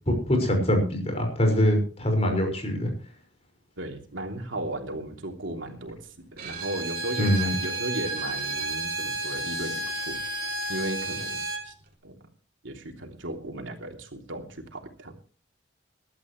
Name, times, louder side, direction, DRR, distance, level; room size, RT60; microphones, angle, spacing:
voice 1, 0.1-2.9 7.2-7.5, equal, 35° left, 3 dB, 5.8 m, -23 dB
voice 2, 3.8-10.2 10.7-11.7 12.0-12.1 12.6-15.1, right 1 dB, 85° right, 2 dB, 3.2 m, -36 dB
Bowed string instrument, 6.4-11.7, right 2 dB, 50° right, 3.1 m, -32 dB
22.5 x 12.5 x 3.3 m, 0.37 s
head